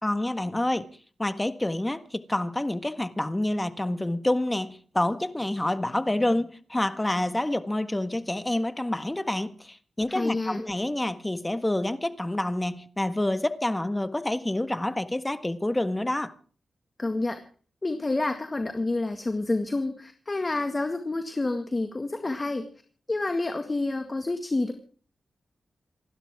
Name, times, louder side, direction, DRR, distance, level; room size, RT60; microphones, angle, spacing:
voice 1, 0.0-0.9 1.2-16.3, left 1 dB, 15° left, 1.5 m, -28 dB
voice 2, 10.1-10.6 17.0-17.4 17.8-22.7 23.1-24.7, left 2 dB, 30° left, 2.0 m, -28 dB
28.0 x 12.5 x 3.7 m
cardioid pair, 70°, 0 cm